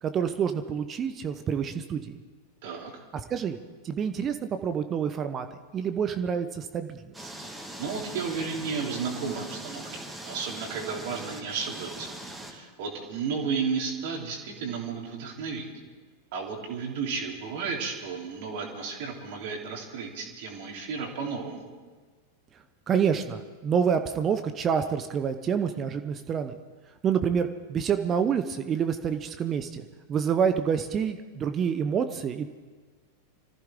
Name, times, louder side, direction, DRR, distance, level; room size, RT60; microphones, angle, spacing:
voice 1, 0.0-2.2 3.3-3.6 3.8-5.5 5.7-7.3 22.9-26.6 27.0-32.5, right 7 dB, 25° right, 9 dB, 0.8 m, -27 dB
sound 1, 7.1-12.5, right 1 dB, 10° right, 2.2 m, -41 dB
voice 2, 7.8-12.1 12.5-15.7 16.3-21.7, right 5 dB, 50° right, 0 dB, 3.1 m, -33 dB
25.0 x 14.5 x 3.7 m, 1.4 s
figure-of-eight pair, 90°, 0 cm